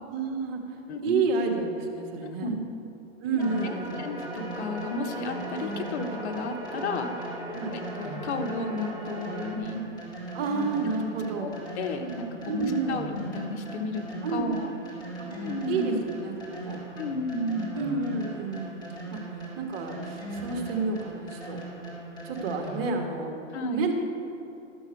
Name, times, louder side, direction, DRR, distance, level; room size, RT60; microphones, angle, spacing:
voice 1, 0.1-0.6 1.0-2.5 3.2-4.0 7.5-7.8 10.3-11.5 12.5-13.0 14.2-14.5 15.2-15.3 15.7-16.8 17.7-18.8 19.1-19.2 19.6-21.6 22.2-23.3 23.7-23.9, right 4 dB, 55° right, 3 dB, 1.7 m, -30 dB
voice 2, 0.9-1.2 2.2-2.6 3.3-7.4 7.7-9.8 11.4-11.5 11.7-14.8 15.4-16.0 17.0-17.7 23.5-23.9, left 2 dB, 65° left, 5 dB, 1.2 m, -33 dB
sound 1, 3.4-23.1, right 2 dB, 10° left, 2.6 m, -39 dB
sound 2, 3.4-9.6, right 1 dB, 15° right, 1.2 m, -39 dB
13.0 x 7.1 x 4.6 m, 2.8 s
hypercardioid pair, 135°, 36 cm